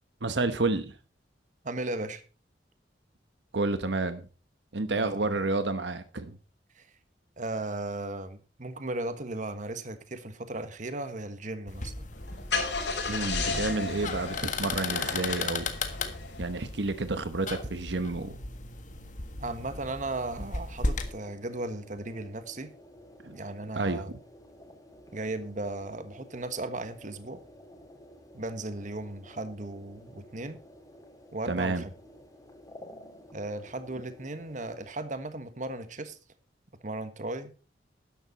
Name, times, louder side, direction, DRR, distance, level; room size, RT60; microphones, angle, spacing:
voice 1, 0.2-0.9 3.5-4.2 4.7-6.4 13.1-15.7 16.4-18.3 23.2-23.4 23.7-24.2 31.5-31.8, right 3 dB, 75° right, 1.1 m, -30 dB
voice 2, 1.6-2.2 5.0-5.3 6.7-6.9 7.4-12.1 19.4-22.7 23.3-24.1 25.1-27.4 28.3-30.6 31.3-31.9 33.3-36.2 36.8-37.5, right 2 dB, 45° right, 1.4 m, -36 dB
sound 1, 11.7-21.1, left 3 dB, 45° left, 1.6 m, -36 dB
Car / Engine starting, 12.1-16.8, left 3 dB, 80° left, 5.9 m, -34 dB
sound 2, 20.8-34.9, equal, 20° left, 3.6 m, -52 dB
13.0 x 11.0 x 4.1 m
head